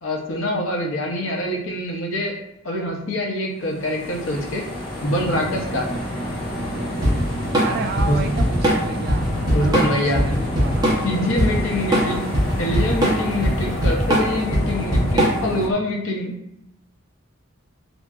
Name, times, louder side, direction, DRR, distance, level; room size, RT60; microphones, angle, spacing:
voice 1, 0.0-2.4 2.6-4.7 5.0-5.9 8.0-8.2 9.5-10.2 11.0-12.3 12.6-16.4, left 1 dB, 75° left, 0 dB, 0.7 m, -25 dB
sound 1, 3.7-15.7, left 1 dB, 50° left, 1.0 m, -29 dB
Drum kit / Drum, 7.0-15.6, equal, 20° right, 0.7 m, -20 dB
voice 2, 7.6-9.3 9.6-10.9 12.0-12.3, right 4 dB, 50° right, 5 dB, 0.3 m, -32 dB
2.9 x 2.6 x 2.3 m, 0.83 s
head